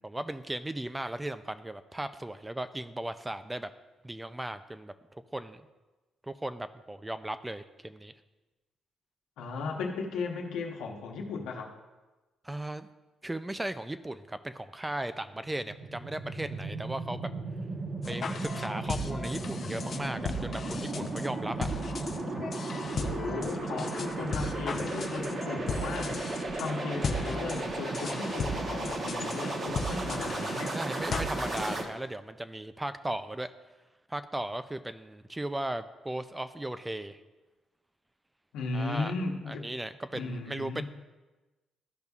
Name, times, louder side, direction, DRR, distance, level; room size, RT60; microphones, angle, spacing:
voice 1, 0.0-3.7 4.0-5.6 6.2-8.1 12.4-12.9 13.2-17.3 18.1-21.7 29.9-30.2 30.7-33.5 34.1-37.2 38.7-39.1 39.5-40.8, right 1 dB, 10° right, 11 dB, 0.4 m, -37 dB
voice 2, 9.4-11.7 23.0-26.1 26.5-30.7 38.5-39.7 40.1-40.8, left 4 dB, 90° left, 0 dB, 1.1 m, -36 dB
sound 1, 15.3-31.8, right 3 dB, 45° right, 1.0 m, -35 dB
sound 2, 18.0-31.9, left 3 dB, 50° left, 0.6 m, -36 dB
13.5 x 5.3 x 2.4 m, 1.1 s
cardioid pair, 90°, 0 cm